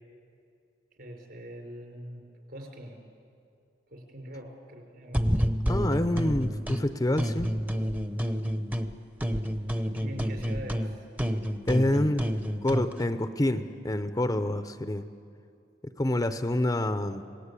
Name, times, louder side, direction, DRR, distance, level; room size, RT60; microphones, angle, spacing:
voice 1, 1.0-3.0 3.9-5.3 10.0-11.0, equal, 60° right, 2 dB, 5.1 m, -43 dB
sound 1, 5.1-6.8 7.2-8.9 9.2-12.9, equal, 10° right, 0.9 m, -29 dB
voice 2, 5.7-7.5 11.7-12.3 12.6-15.0 15.8-17.2, left 1 dB, 20° left, 10 dB, 0.7 m, -27 dB
27.0 x 18.5 x 8.4 m, 2.4 s
head